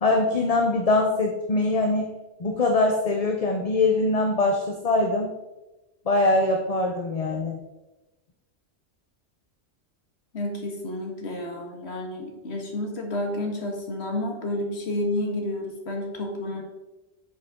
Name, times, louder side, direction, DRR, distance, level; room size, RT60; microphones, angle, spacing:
voice 1, 0.0-2.1 2.4-5.3 6.1-7.6, left 2 dB, 35° left, 2 dB, 0.8 m, -23 dB
voice 2, 10.3-16.6, left 1 dB, 60° left, 1 dB, 1.9 m, -30 dB
9.8 x 6.4 x 3.7 m, 1.1 s
omnidirectional pair, 1.3 m